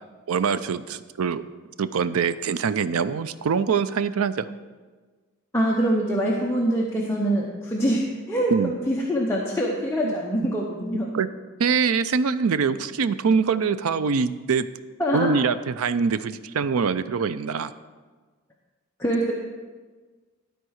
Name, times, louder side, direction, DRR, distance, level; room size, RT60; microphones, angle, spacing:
voice 1, 0.3-1.4 1.8-4.5 8.5-8.7 10.0-10.1 11.1-11.3 11.6-14.7 15.1-17.7, right 5 dB, 80° right, 13 dB, 0.4 m, -24 dB
voice 2, 5.5-11.1 15.0-15.3 19.0-19.3, right 1 dB, 10° left, -3 dB, 0.8 m, -24 dB
12.5 x 4.6 x 6.4 m, 1.4 s
head